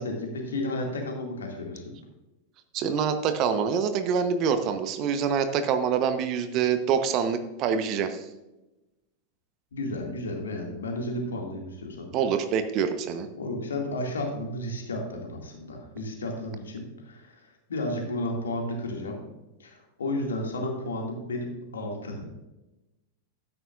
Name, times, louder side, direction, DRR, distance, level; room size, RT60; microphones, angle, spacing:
voice 1, 0.0-2.0 9.7-12.1 13.3-17.4 17.7-19.3 19.6-22.5, left 1 dB, 70° left, 1 dB, 2.3 m, -33 dB
voice 2, 2.7-8.2 12.1-13.3, right 7 dB, 40° right, 9 dB, 1.0 m, -26 dB
12.5 x 9.7 x 2.5 m, 1.0 s
figure-of-eight pair, 90°, 0 cm